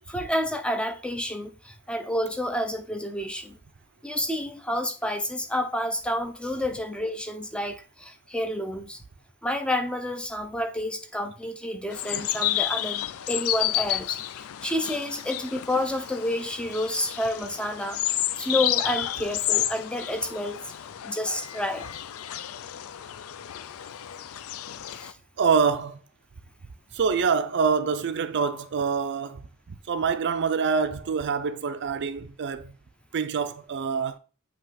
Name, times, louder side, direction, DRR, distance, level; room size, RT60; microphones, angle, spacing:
voice 1, 0.1-3.6 4.0-9.0 9.4-18.0 18.4-20.6 21.0-21.8 25.0-25.1, left 1 dB, 5° left, 0.5 m, -29 dB
sound 1, 11.9-25.1, left 12 dB, 65° left, 0.4 m, -31 dB
voice 2, 25.4-26.0 26.9-29.5 29.9-32.7 33.1-34.2, right 5 dB, 50° right, 0.5 m, -25 dB
7.7 x 2.9 x 4.1 m
head